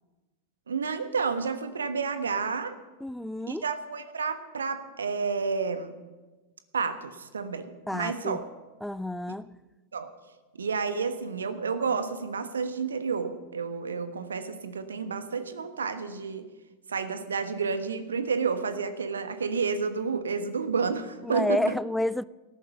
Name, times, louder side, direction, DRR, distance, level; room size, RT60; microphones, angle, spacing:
voice 1, 0.7-2.8 3.5-5.9 6.7-8.4 9.9-10.1 10.6-16.4 16.9-21.6, right 5 dB, 70° right, 1.4 m, -30 dB
voice 2, 3.0-3.6 7.9-8.4 8.8-9.5 21.2-22.2, left 1 dB, ahead, 0.4 m, -30 dB
18.5 x 14.0 x 5.5 m
figure-of-eight pair, 90°, 0 cm